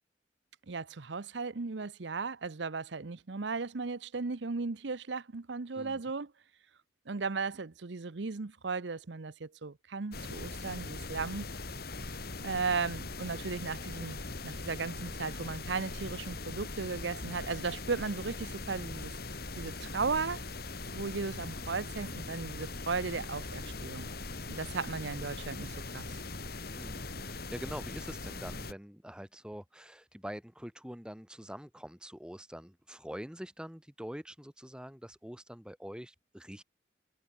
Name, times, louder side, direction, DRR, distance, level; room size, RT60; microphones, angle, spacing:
voice 1, 0.7-6.3 7.1-11.5 12.4-19.1 19.6-20.4 20.9-24.1 24.5-26.1, right 4 dB, 70° right, 0.8 m, -36 dB
sound 1, 10.1-28.7, left 3 dB, 55° left, 3.0 m, -41 dB
voice 2, 26.7-36.6, equal, 5° right, 1.6 m, -45 dB
head